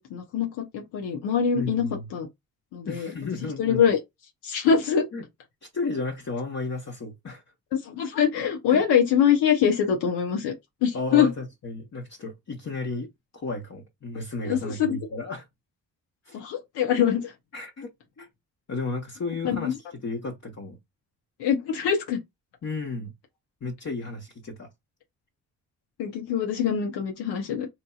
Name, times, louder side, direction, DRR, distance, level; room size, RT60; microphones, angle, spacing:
voice 1, 0.1-1.8 2.1-2.3 2.7-3.1 3.6-4.0 4.4-5.1 7.8-10.5 10.8-11.3 14.4-15.0 16.3-17.3 19.4-19.7 21.4-22.2 26.0-27.7, left 8 dB, 80° left, 0.9 m, -23 dB
voice 2, 1.5-2.1 2.9-3.9 5.1-5.2 5.7-7.4 8.7-8.8 10.9-15.4 16.2-16.4 17.5-18.3 18.7-20.8 22.6-23.1 23.6-24.7, left 3 dB, 40° left, 1.1 m, -33 dB
4.4 x 2.6 x 2.3 m
hypercardioid pair, 40°, 40 cm